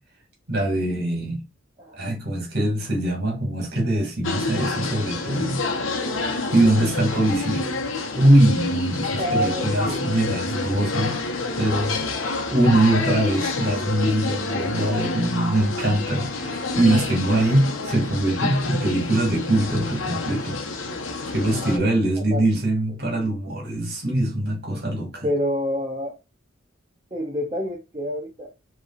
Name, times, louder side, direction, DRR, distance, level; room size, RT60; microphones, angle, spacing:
voice 1, 0.5-1.4 1.9-5.6 6.5-7.7 8.1-11.1 11.6-12.0 12.5-20.6 21.3-25.3, right 1 dB, 50° right, 2.0 m, -22 dB
sound 1, 4.2-21.8, left 3 dB, 75° left, 0.9 m, -28 dB
voice 2, 9.2-10.0 21.4-21.9 22.2-22.5 25.2-26.2 27.1-28.5, equal, 25° right, 0.6 m, -28 dB
5.1 x 3.1 x 2.4 m
head